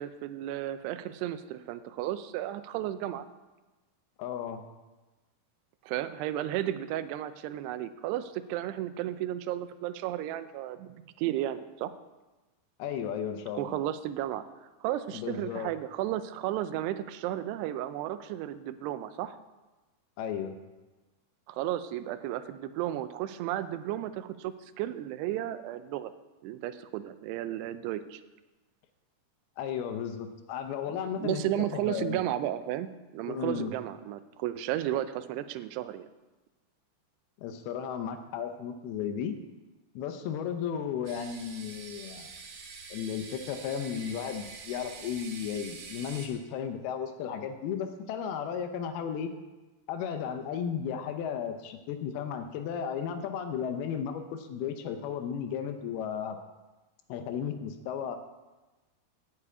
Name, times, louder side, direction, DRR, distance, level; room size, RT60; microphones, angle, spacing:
voice 1, 0.0-3.3 5.8-11.9 13.5-19.4 21.5-26.1 26.4-28.2 31.2-36.1, right 13 dB, 85° right, 12 dB, 2.7 m, -33 dB
voice 2, 4.2-4.6 12.8-13.8 15.1-15.7 20.2-20.6 29.6-32.2 33.2-33.7 37.4-39.3 40.0-42.3 42.9-49.3 49.9-56.4 57.1-58.2, left 8 dB, 80° left, 7 dB, 2.6 m, -34 dB
sound 1, 41.1-46.3, right 4 dB, 70° right, 3.1 m, -45 dB
8.3 x 6.8 x 8.6 m, 1.1 s
omnidirectional pair, 4.7 m